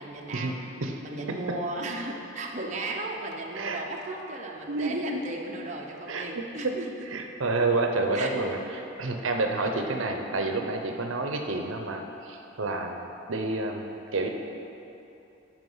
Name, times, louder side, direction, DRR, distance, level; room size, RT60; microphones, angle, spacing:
voice 1, 0.0-0.6 1.0-7.1 8.1-8.3, right 2 dB, 35° right, -1 dB, 0.8 m, -35 dB
voice 2, 1.3-1.6 3.5-3.8 4.7-4.9 6.1-6.7 7.1-14.3, right 2 dB, 75° right, 3 dB, 0.7 m, -29 dB
11.0 x 4.9 x 5.5 m, 2.8 s
head